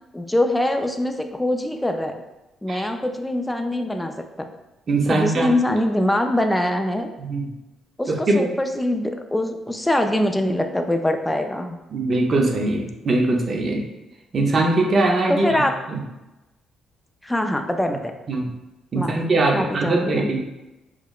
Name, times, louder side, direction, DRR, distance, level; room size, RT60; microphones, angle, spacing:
voice 1, 0.1-2.1 2.6-4.1 5.1-7.1 8.0-11.8 15.3-15.7 17.2-18.1 19.0-19.2 19.5-20.2, left 1 dB, 10° left, 5 dB, 0.3 m, -23 dB
voice 2, 4.9-5.5 7.2-7.5 8.1-8.5 11.9-13.8 14.3-15.6 15.9-16.0 18.3-18.5 18.9-20.4, right 2 dB, 45° right, 0 dB, 0.6 m, -21 dB
4.8 x 2.0 x 2.3 m, 1.0 s
cardioid pair, 90°, 0 cm